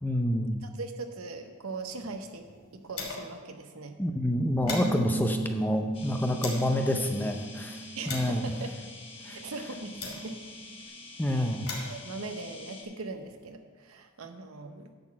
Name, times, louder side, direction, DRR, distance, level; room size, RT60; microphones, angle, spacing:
voice 1, 0.0-0.6 4.0-8.5 9.3-9.4 11.2-11.7, left 1 dB, 10° left, 5 dB, 0.5 m, -28 dB
voice 2, 0.6-2.5 2.7-4.0 8.0-8.7 9.3-10.4 11.3-11.6 11.8-14.9, right 3 dB, 70° right, 6 dB, 0.8 m, -40 dB
sound 1, 1.7-3.5 3.8-3.9 4.2-6.8 7.4-10.6 11.3-13.5, left 3 dB, 80° left, 2.7 m, -42 dB
Bass guitar, 4.6-9.0 9.3-10.9, right 2 dB, 35° right, 0.6 m, -38 dB
sound 2, 5.9-12.8, left 3 dB, 25° left, 1.2 m, -47 dB
10.5 x 4.0 x 7.4 m, 1.5 s
head